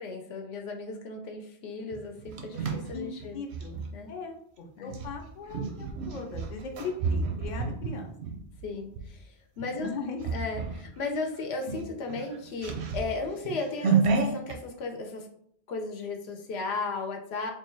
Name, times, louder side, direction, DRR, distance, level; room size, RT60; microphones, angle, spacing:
voice 1, 0.0-3.4 3.9-4.1 4.8-5.0 8.6-9.9 10.3-15.3 15.7-17.5, left 3 dB, 80° left, 3 dB, 0.9 m, -35 dB
sound 1, 1.9-3.9 4.9-9.1 9.6-9.8 10.2-10.9 11.2-11.3 11.6-14.6, right 5 dB, 80° right, 0.9 m, -31 dB
voice 2, 2.9-3.8 4.1-8.1 9.8-10.2, left 4 dB, 50° left, 3 dB, 0.7 m, -38 dB
3.2 x 2.3 x 4.3 m, 0.68 s
omnidirectional pair, 1.1 m